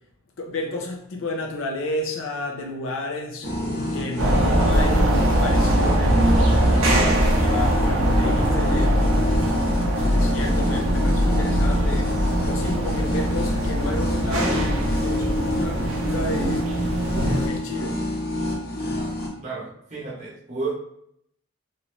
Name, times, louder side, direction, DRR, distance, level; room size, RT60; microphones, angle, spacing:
voice 1, 0.4-3.5 3.9-9.0 10.0-12.2 12.4-16.7 17.2-18.0, left 2 dB, 70° left, 0.5 m, -32 dB
sound 1, 3.4-19.3, left 1 dB, 50° left, 0.9 m, -28 dB
sound 2, 4.2-17.5, right 1 dB, 85° right, 0.7 m, -21 dB
voice 2, 18.8-19.1 19.4-20.8, right 4 dB, 35° right, 0.7 m, -32 dB
3.0 x 2.6 x 3.0 m
head